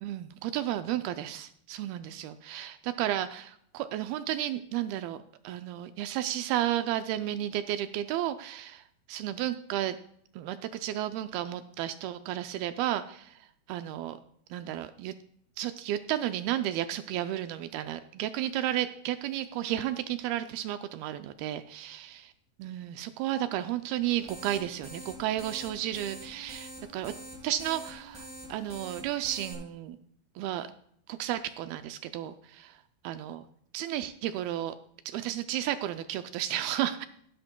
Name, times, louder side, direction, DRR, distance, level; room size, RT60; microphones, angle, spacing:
voice 1, 0.0-5.2 5.4-8.8 9.1-10.0 10.4-13.4 13.7-14.2 14.5-15.1 15.6-22.2 22.6-27.1 27.4-30.0 30.4-30.7 31.1-32.6 33.1-33.4 33.7-34.8 35.1-37.1, right 12 dB, 85° right, 9 dB, 2.2 m, -32 dB
sound 1, 24.0-29.5, right 1 dB, ahead, 3.6 m, -46 dB
16.5 x 10.5 x 2.2 m, 0.66 s
omnidirectional pair, 4.8 m